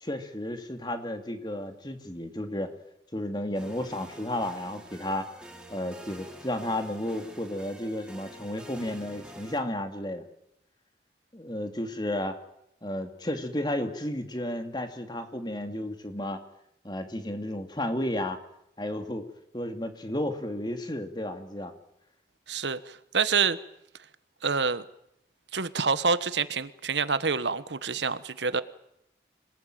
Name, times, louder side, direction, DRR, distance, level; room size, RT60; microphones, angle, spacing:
voice 1, 0.0-2.7 3.1-5.3 5.7-10.2 11.3-12.4 12.8-16.4 16.8-18.4 18.8-19.3 19.5-21.7, left 1 dB, 25° left, 7 dB, 2.5 m, -32 dB
sound 1, 3.5-9.6, right 1 dB, 5° right, 3.1 m, -47 dB
voice 2, 22.5-23.6 24.4-24.8 25.5-28.6, right 5 dB, 90° right, 14 dB, 1.3 m, -27 dB
26.5 x 19.0 x 9.2 m, 0.77 s
head